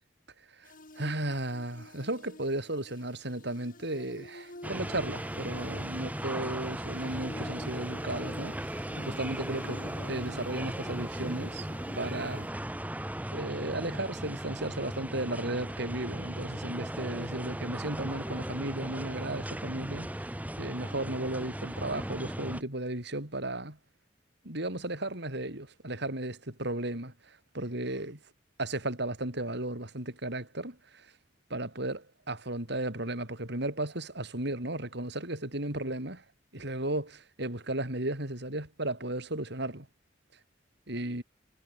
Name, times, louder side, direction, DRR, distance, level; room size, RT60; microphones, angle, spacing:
voice 1, 0.5-11.7 12.0-12.5 13.3-23.8 24.4-28.2 28.6-31.1 31.5-36.2 36.5-39.9 40.9-41.2, right 1 dB, 65° right, 6.0 m, -35 dB
sound 1, 0.6-12.5, left 1 dB, 45° left, 6.4 m, -49 dB
sound 2, 4.6-22.6, right 1 dB, 10° right, 1.2 m, -37 dB
head